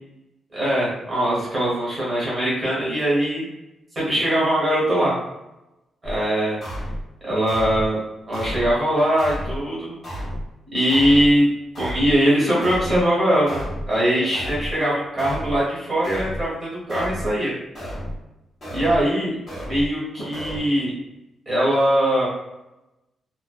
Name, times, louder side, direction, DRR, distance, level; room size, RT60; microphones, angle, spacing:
voice 1, 0.5-3.4 3.9-5.1 6.0-6.6 7.2-8.0 8.3-9.9 10.7-11.5 11.8-17.5 18.7-19.3 19.7-20.9 21.5-22.3, equal, 20° right, -7 dB, 1.0 m, -21 dB
sound 1, 6.0-6.2 6.6-7.0 7.5-7.9 8.3-8.7 9.2-9.6 10.0-10.5 10.9-11.3 11.8-12.2 12.6-13.0 13.5-13.9 14.3-14.7 15.2-15.6 16.0-16.5 16.9-17.3 17.8-18.2 18.6-19.0 19.5-19.9 20.3-20.6, equal, 30° left, 1.1 m, -31 dB
2.4 x 2.3 x 2.3 m, 0.94 s
wide cardioid pair, 175°, 0 cm